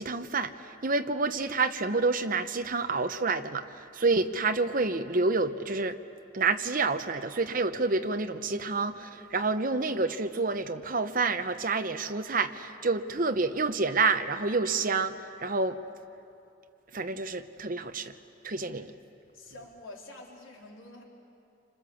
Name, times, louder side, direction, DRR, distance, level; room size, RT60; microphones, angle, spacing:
voice 1, 0.0-6.0 6.3-15.8 16.9-18.1 18.4-18.9, right 3 dB, 40° right, 8 dB, 0.9 m, -28 dB
voice 2, 19.3-21.0, left 2 dB, 75° left, -2 dB, 3.8 m, -47 dB
28.5 x 25.5 x 7.1 m, 2.6 s
head